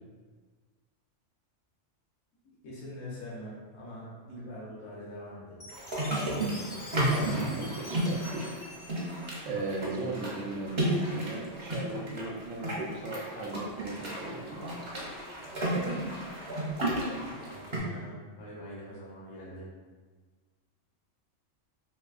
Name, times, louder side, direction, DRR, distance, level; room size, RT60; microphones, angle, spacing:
voice 1, 2.4-5.6 17.5-19.7, equal, 70° left, -6 dB, 1.0 m, -44 dB
Chime, 5.6-9.9, left 2 dB, 50° left, 0.5 m, -47 dB
sound 1, 5.7-17.8, right 1 dB, 35° right, 0.5 m, -33 dB
voice 2, 7.1-8.7 9.4-14.9, right 2 dB, 80° right, 0 dB, 0.9 m, -37 dB
3.3 x 2.6 x 2.4 m, 1.4 s
omnidirectional pair, 1.3 m